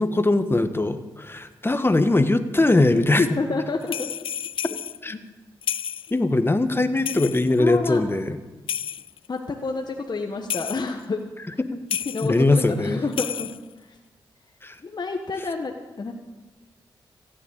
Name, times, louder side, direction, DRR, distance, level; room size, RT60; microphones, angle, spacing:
voice 1, 0.0-3.2 5.0-5.2 6.1-8.4 11.6-11.8 12.2-13.0 14.6-14.8, left 2 dB, 25° left, 10 dB, 1.3 m, -21 dB
voice 2, 2.9-4.1 5.1-5.2 7.6-8.0 9.3-11.2 12.1-13.5 14.8-16.1, left 3 dB, 45° left, 3 dB, 1.2 m, -28 dB
sound 1, 3.8-5.0 5.6-6.1 7.1-7.6 8.7-9.3 10.5-10.9 11.9-12.4 13.1-13.7, left 9 dB, 65° left, 0.3 m, -31 dB
15.5 x 7.2 x 8.8 m, 1.2 s
supercardioid pair, 45°, 10 cm